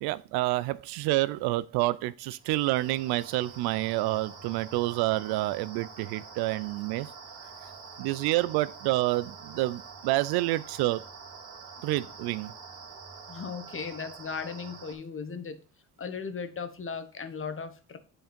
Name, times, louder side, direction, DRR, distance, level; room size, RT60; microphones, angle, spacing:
voice 1, 0.0-7.1 7.6-7.7 8.0-11.0 11.8-12.5, right 18 dB, 85° right, 0.5 m, -28 dB
sound 1, 2.4-14.9, right 5 dB, 60° right, 2.6 m, -46 dB
voice 2, 13.3-15.6 16.0-18.0, left 5 dB, 35° left, 1.1 m, -37 dB
7.8 x 3.7 x 5.1 m
supercardioid pair, 75°, 38 cm